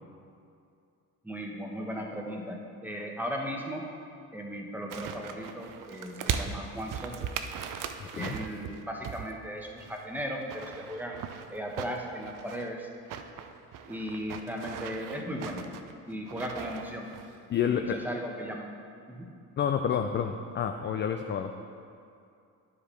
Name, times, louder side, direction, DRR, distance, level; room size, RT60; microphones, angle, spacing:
voice 1, 1.2-3.9 4.3-7.3 8.1-11.2 11.5-12.9 13.9-15.6 16.1-17.1 17.7-18.7 19.1-19.3, equal, 5° right, 0 dB, 1.2 m, -37 dB
sound 1, 4.9-9.3 9.6-12.7 13.1-17.3 17.6-17.7, right 7 dB, 45° right, 0.6 m, -39 dB
voice 2, 8.0-8.4 17.5-18.0 19.6-21.5, left 8 dB, 25° left, 6 dB, 0.4 m, -29 dB
11.0 x 4.8 x 3.3 m, 2.4 s
hypercardioid pair, 55°, 45 cm